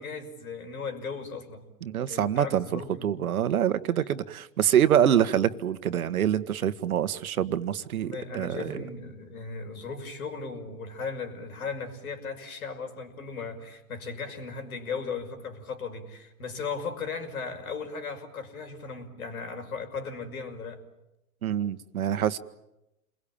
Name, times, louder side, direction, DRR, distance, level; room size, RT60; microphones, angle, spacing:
voice 1, 0.0-1.6 2.1-3.2 8.0-20.8, left 4 dB, 80° left, 6 dB, 6.0 m, -37 dB
voice 2, 1.8-8.8 21.4-22.4, right 10 dB, 80° right, 13 dB, 1.5 m, -26 dB
29.0 x 22.5 x 8.8 m, 0.92 s
hypercardioid pair, 115°, 42 cm